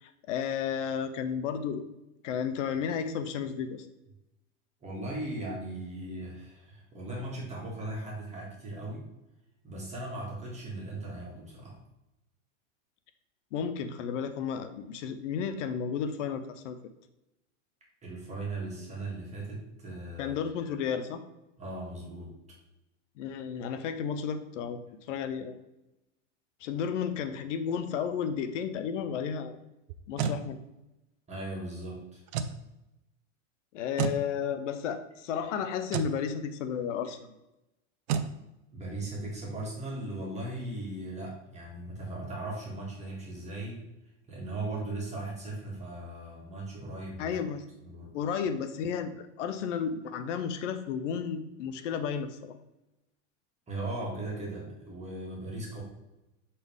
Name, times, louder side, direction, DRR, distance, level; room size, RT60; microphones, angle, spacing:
voice 1, 0.0-1.8 2.2-3.9 13.5-16.8 20.2-21.2 23.2-24.8 25.1-25.6 26.6-29.6 30.1-30.6 33.7-37.3 47.2-47.6 48.1-52.6, left 7 dB, 75° left, 10 dB, 0.8 m, -33 dB
voice 2, 4.8-9.0 9.6-11.8 18.0-20.4 21.6-22.3 31.3-32.2 38.7-43.8 44.3-47.4 47.8-48.1 53.7-55.8, right 2 dB, 20° right, -4 dB, 2.2 m, -38 dB
sound 1, 29.9-30.4 32.3-32.6 34.0-34.2 35.9-36.2 38.1-38.3, right 7 dB, 60° right, 0.6 m, -30 dB
7.8 x 4.2 x 3.6 m, 0.94 s
supercardioid pair, 120°, 37 cm